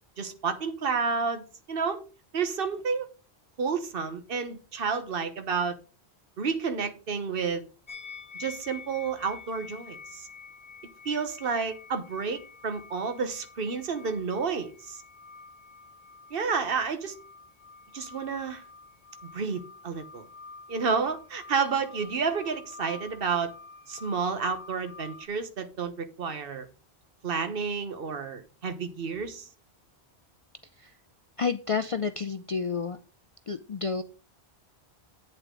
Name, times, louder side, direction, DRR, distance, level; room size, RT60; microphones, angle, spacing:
voice 1, 0.2-2.0 2.3-3.1 3.6-5.8 6.4-7.7 8.4-10.3 11.0-15.0 16.3-17.2 17.9-18.6 19.2-20.2 20.7-23.5 23.9-26.7 27.2-29.5, right 5 dB, 60° right, 1.2 m, -30 dB
sound 1, 7.9-25.3, left 4 dB, 75° left, 1.7 m, -48 dB
voice 2, 31.4-33.0 33.5-34.0, left 5 dB, 50° left, 0.4 m, -30 dB
8.5 x 8.1 x 3.7 m
omnidirectional pair, 1.1 m